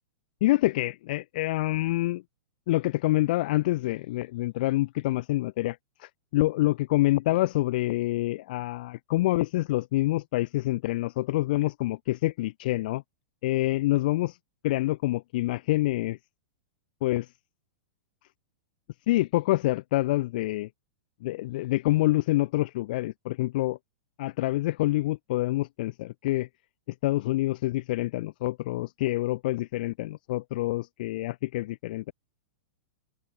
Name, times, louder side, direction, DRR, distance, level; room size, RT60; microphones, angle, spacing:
voice 1, 0.4-2.2 2.7-13.0 13.4-14.4 14.6-16.2 17.0-17.3 19.1-20.7 21.2-23.8 24.2-26.5 26.9-32.1, left 17 dB, 55° left, 3.5 m, -27 dB
open air
hypercardioid pair, 145°, 6 cm